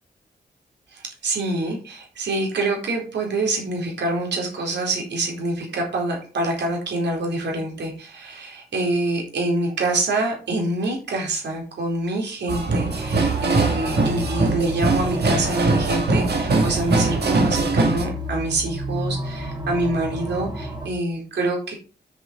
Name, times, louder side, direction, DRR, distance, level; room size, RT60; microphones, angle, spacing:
voice 1, 0.9-21.7, right 2 dB, 85° right, 0 dB, 4.1 m, -26 dB
sound 1, 12.5-18.0, right 3 dB, 70° right, 2.5 m, -21 dB
sound 2, 12.9-20.9, right 1 dB, 25° right, 3.2 m, -32 dB
7.4 x 7.0 x 5.3 m, 0.37 s
cardioid pair, 70°, 18 cm